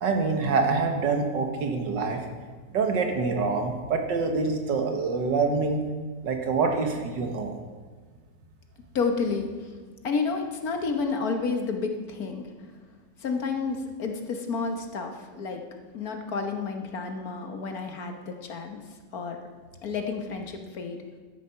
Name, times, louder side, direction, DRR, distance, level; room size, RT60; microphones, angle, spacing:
voice 1, 0.0-2.2 2.7-5.8 6.2-7.5, right 4 dB, 80° right, 4 dB, 2.0 m, -26 dB
voice 2, 8.9-9.7 10.0-12.5 13.2-15.6 15.9-18.8 19.1-19.4 19.8-21.0, left 4 dB, 60° left, 4 dB, 1.6 m, -30 dB
12.0 x 10.0 x 5.7 m, 1.5 s
omnidirectional pair, 1.9 m